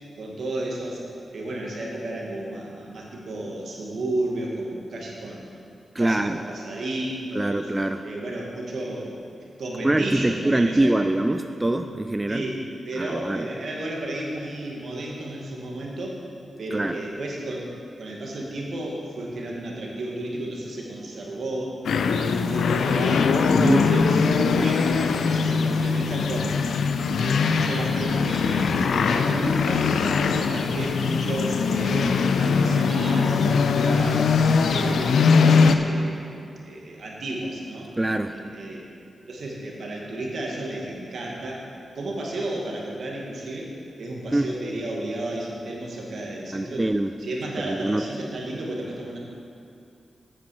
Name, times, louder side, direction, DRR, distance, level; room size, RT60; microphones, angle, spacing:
voice 1, 0.2-1.0 1.3-5.4 6.0-7.7 8.0-9.2 9.6-10.9 12.3-16.2 16.6-17.7 18.0-21.7 22.3-23.3 23.6-26.5 27.1-29.9 30.3-34.3 34.6-36.3 36.6-37.9 38.3-38.8 39.3-41.6 41.9-43.7 44.0-46.9 47.2-49.2, right 1 dB, 70° right, -2 dB, 1.8 m, -32 dB
voice 2, 5.9-6.4 7.4-8.0 9.8-12.5 13.0-13.5 16.7-17.0 23.5-23.9 38.0-38.4 44.3-44.5 46.5-47.1 47.7-48.1, right 1 dB, 20° right, 7 dB, 0.4 m, -24 dB
sound 1, 21.8-35.8, left 5 dB, 85° left, 0.4 m, -21 dB
8.7 x 8.6 x 4.8 m, 2.5 s
cardioid pair, 55°, 0 cm